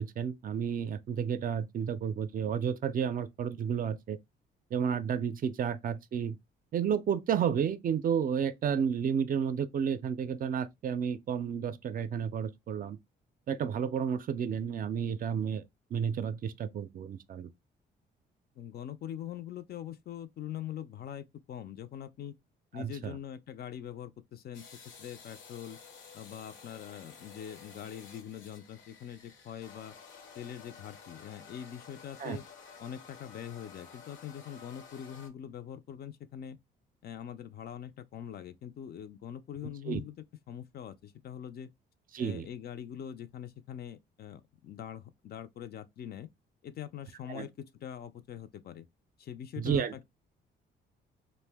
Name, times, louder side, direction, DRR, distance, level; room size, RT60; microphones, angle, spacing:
voice 1, 0.0-4.2 4.7-6.4 6.7-13.0 13.5-15.6 15.9-17.5 22.7-23.1 32.2-32.4 39.9-40.0 42.1-42.5 47.3-47.5 49.6-50.0, right 7 dB, 45° right, 0.4 m, -31 dB
voice 2, 18.6-22.4 22.7-24.7 25.0-25.8 26.1-29.9 30.4-32.4 32.8-36.6 37.0-40.1 40.5-41.7 42.2-46.3 46.6-48.9 49.2-50.0, left 9 dB, 50° left, 0.4 m, -43 dB
sound 1, 24.5-35.3, left 6 dB, 75° left, 0.7 m, -52 dB
2.6 x 2.1 x 3.3 m
cardioid pair, 90°, 20 cm